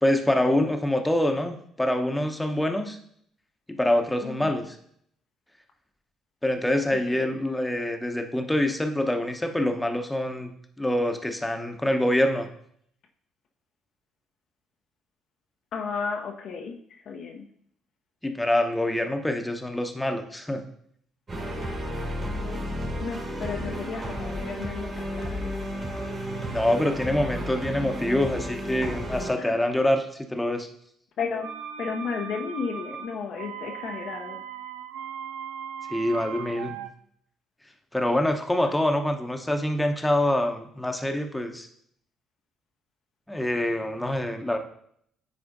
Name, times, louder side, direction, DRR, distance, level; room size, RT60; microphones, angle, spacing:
voice 1, 0.0-3.0 3.7-4.8 6.4-10.5 10.8-12.5 18.2-20.7 26.5-30.7 35.9-36.8 37.9-41.7 43.3-44.6, left 1 dB, 10° left, 4 dB, 0.9 m, -25 dB
voice 2, 4.2-4.6 7.1-7.4 15.7-17.4 23.0-25.5 29.3-29.6 31.2-31.5 31.8-34.4 38.6-38.7, left 5 dB, 55° left, 2 dB, 0.6 m, -33 dB
sound 1, 21.3-29.3, equal, 40° right, 2.1 m, -32 dB
sound 2, 31.4-36.9, right 8 dB, 70° right, 0.3 m, -38 dB
10.5 x 4.2 x 2.6 m, 0.66 s
hypercardioid pair, 50°, 0 cm